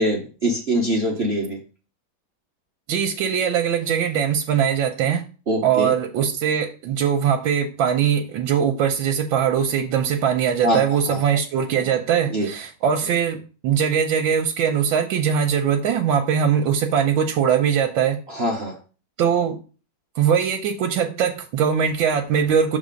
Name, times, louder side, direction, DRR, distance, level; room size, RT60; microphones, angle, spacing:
voice 1, 0.0-1.6 5.5-5.9 10.6-10.8 11.1-11.2 12.3-12.5 18.3-18.8, right 1 dB, 45° right, -1 dB, 0.9 m, -23 dB
voice 2, 2.9-5.2 5.6-18.2 19.2-19.6 20.1-22.8, right 8 dB, 85° right, 3 dB, 1.4 m, -21 dB
6.5 x 3.5 x 5.1 m, 0.36 s
omnidirectional pair, 2.1 m